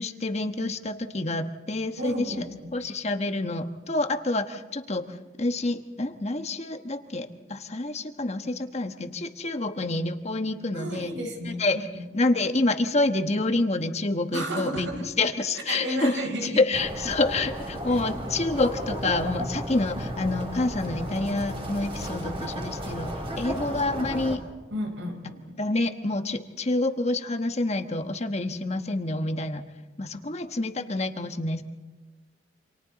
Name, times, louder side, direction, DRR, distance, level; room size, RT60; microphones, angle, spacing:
voice 1, 0.0-2.5 2.7-5.0 5.4-11.1 11.4-11.9 12.1-14.9 15.2-16.1 16.4-23.1 23.4-24.4 25.6-29.6 30.0-31.6, left 2 dB, 35° left, 7 dB, 1.2 m, -27 dB
voice 2, 2.0-2.7 10.7-12.0 14.3-15.1 15.7-16.6 17.9-18.0 24.7-25.6, equal, 90° right, 4 dB, 4.6 m, -33 dB
sound 1, 16.7-24.4, equal, 30° right, 3.2 m, -34 dB
29.0 x 26.5 x 4.1 m, 1.3 s
head